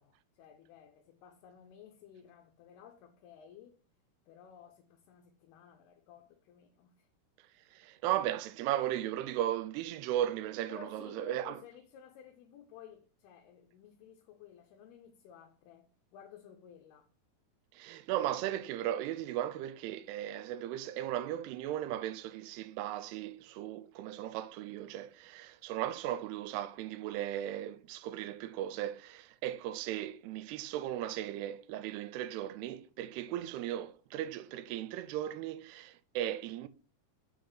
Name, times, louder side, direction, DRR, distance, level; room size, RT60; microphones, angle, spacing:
voice 1, 0.0-3.8 4.3-7.1 10.7-17.1, left 7 dB, 80° left, 2.8 m, -54 dB
voice 2, 7.7-11.6 17.7-36.7, right 12 dB, 85° right, 2.6 m, -36 dB
6.1 x 5.1 x 5.8 m
omnidirectional pair, 4.7 m